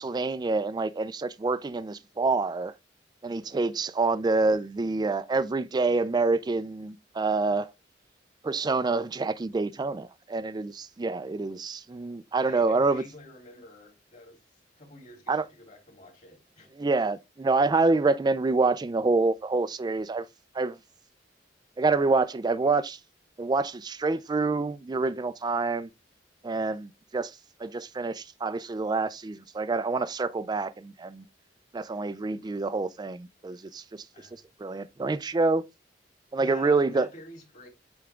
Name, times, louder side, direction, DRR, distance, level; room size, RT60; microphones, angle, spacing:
voice 1, 0.0-2.7 3.2-7.7 8.4-13.0 15.3-15.5 16.8-20.3 20.5-20.8 21.8-23.0 23.4-25.9 26.4-31.2 31.7-34.0 34.6-35.6 36.3-37.1, right 3 dB, 25° right, 0.4 m, -27 dB
voice 2, 12.4-14.4 14.8-16.9 34.1-34.5 36.4-37.7, left 1 dB, 45° left, 3.2 m, -49 dB
8.5 x 3.5 x 3.3 m
head